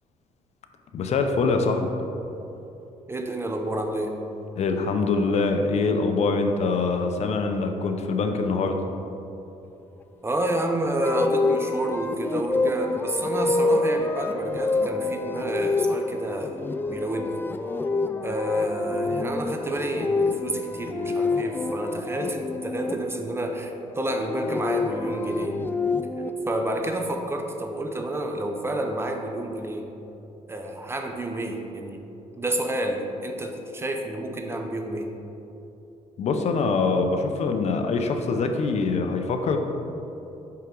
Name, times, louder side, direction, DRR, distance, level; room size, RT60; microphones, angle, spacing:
voice 1, 0.9-1.9 4.6-8.8 36.2-39.6, left 4 dB, 55° left, 5 dB, 0.6 m, -24 dB
voice 2, 3.1-4.1 10.2-16.6 16.9-17.4 18.2-25.6 26.5-29.9 30.5-32.0 32.4-35.1, right 1 dB, 20° right, 3 dB, 0.6 m, -29 dB
sound 1, 11.0-22.9 24.1-26.3, left 3 dB, 15° left, 0.3 m, -27 dB
5.9 x 5.7 x 3.8 m, 3.0 s
cardioid pair, 100°, 13 cm